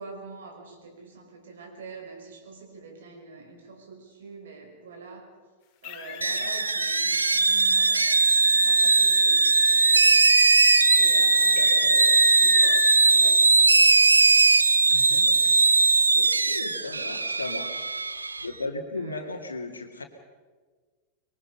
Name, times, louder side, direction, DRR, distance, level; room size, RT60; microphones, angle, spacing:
voice 1, 0.0-5.3 5.8-10.3 10.9-11.7 12.4-13.9 19.0-19.4, right 4 dB, 65° right, 2 dB, 5.3 m, -45 dB
sound 1, 5.8-13.0, left 10 dB, 40° left, 2.6 m, -34 dB
sound 2, 6.2-18.5, right 3 dB, 80° right, 0.8 m, -20 dB
voice 2, 11.4-12.0 14.9-15.5 15.8-17.9 18.4-20.0, left 2 dB, 75° left, 4 dB, 2.3 m, -36 dB
25.5 x 22.5 x 5.6 m, 1.5 s
figure-of-eight pair, 90°, 0 cm